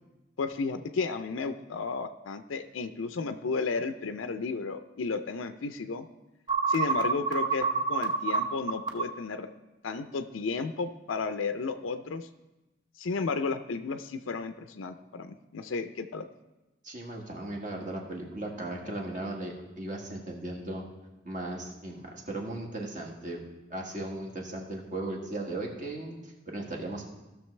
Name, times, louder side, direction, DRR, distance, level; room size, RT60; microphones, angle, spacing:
voice 1, 0.4-6.1 6.7-9.5 9.8-12.3 13.0-16.2, left 4 dB, 85° left, 8 dB, 0.5 m, -33 dB
sound 1, 6.5-9.0, right 5 dB, 20° right, 0.8 m, -26 dB
voice 2, 16.8-20.8 21.2-23.4 23.7-27.1, right 2 dB, 40° right, 0 dB, 1.6 m, -37 dB
16.5 x 6.4 x 3.2 m, 1.0 s
head